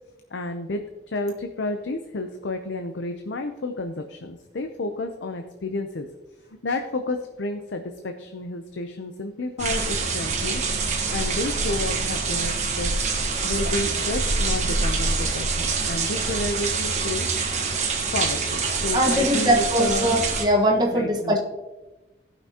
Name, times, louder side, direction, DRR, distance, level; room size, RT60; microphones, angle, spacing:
voice 1, 0.3-6.1 6.6-10.6 10.9-12.9 13.2-17.3 17.6-17.7 18.1-20.1 20.9-21.4, left 2 dB, 85° left, 6 dB, 0.7 m, -31 dB
sound 1, 9.6-20.4, right 4 dB, 40° right, 1.3 m, -25 dB
voice 2, 18.9-21.4, equal, 25° right, 0 dB, 1.4 m, -21 dB
17.0 x 5.9 x 2.9 m, 1.1 s
head